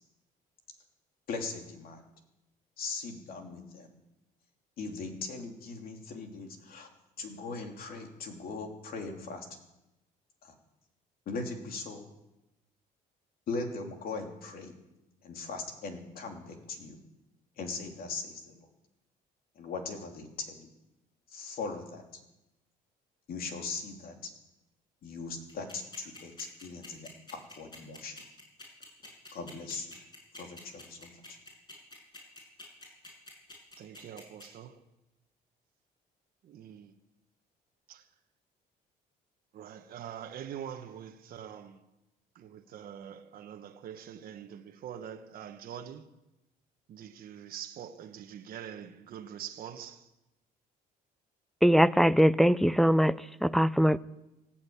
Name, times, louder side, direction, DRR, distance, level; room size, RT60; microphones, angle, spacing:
voice 1, 1.3-2.0 2.8-3.9 4.8-6.9 7.2-9.5 10.4-10.5 11.3-12.1 13.5-14.7 15.2-17.0 17.6-18.7 19.6-20.7 21.3-22.0 23.3-24.3 25.0-28.2 29.3-29.9 30.4-31.1, left 4 dB, 60° left, 3.1 m, -39 dB
sound 1, 25.5-34.5, left 2 dB, 25° left, 7.6 m, -48 dB
voice 2, 33.8-34.8 36.4-36.9 37.9-38.1 39.5-41.8 42.3-46.0 46.9-50.1, right 9 dB, 60° right, 1.2 m, -44 dB
voice 3, 51.6-54.0, equal, ahead, 0.4 m, -22 dB
18.0 x 8.9 x 8.7 m
cardioid pair, 110°, 17 cm